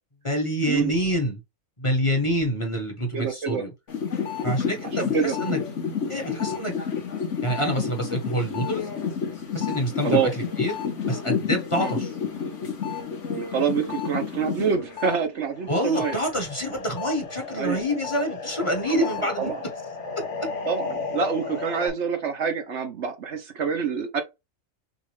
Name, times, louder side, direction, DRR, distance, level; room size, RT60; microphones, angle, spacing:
voice 1, 0.2-1.4 1.8-3.7 4.4-5.6 6.0-6.7 7.4-8.9 9.5-10.8 11.1-12.1 15.7-19.5, equal, 25° left, 1.2 m, -26 dB
voice 2, 3.1-3.6 5.0-5.4 10.0-10.3 11.8-11.9 13.3-16.2 17.6-17.8 18.9-19.1 19.4-19.6 20.7-24.2, right 6 dB, 65° right, 1.1 m, -26 dB
sound 1, 3.9-15.2 15.5-21.9, left 6 dB, 65° left, 1.6 m, -31 dB
6.4 x 2.5 x 3.4 m
omnidirectional pair, 1.4 m